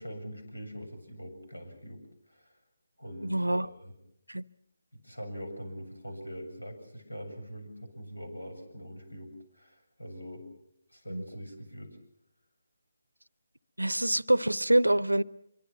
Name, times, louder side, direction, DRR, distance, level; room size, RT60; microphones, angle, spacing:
voice 1, 0.0-2.0 2.3-2.5 3.0-3.9 4.9-10.5 10.9-12.0, equal, 85° left, 7.6 m, -43 dB
voice 2, 3.2-3.7 4.3-4.4 11.1-11.2 13.8-15.2, right 1 dB, 90° right, 0.8 m, -25 dB
25.5 x 23.5 x 6.0 m
figure-of-eight pair, 150°, 0 cm